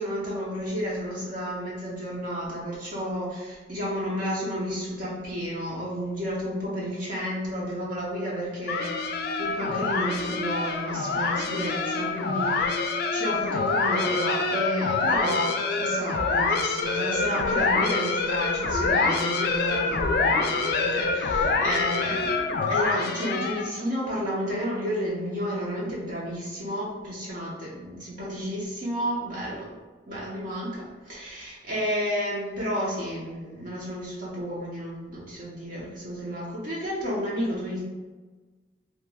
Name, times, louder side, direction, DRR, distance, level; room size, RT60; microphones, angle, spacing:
voice 1, 0.0-29.7 30.1-37.8, equal, 50° right, -6 dB, 0.7 m, -31 dB
sound 1, 8.7-23.8, left 4 dB, 60° left, 0.3 m, -26 dB
2.9 x 2.2 x 3.3 m, 1.3 s
head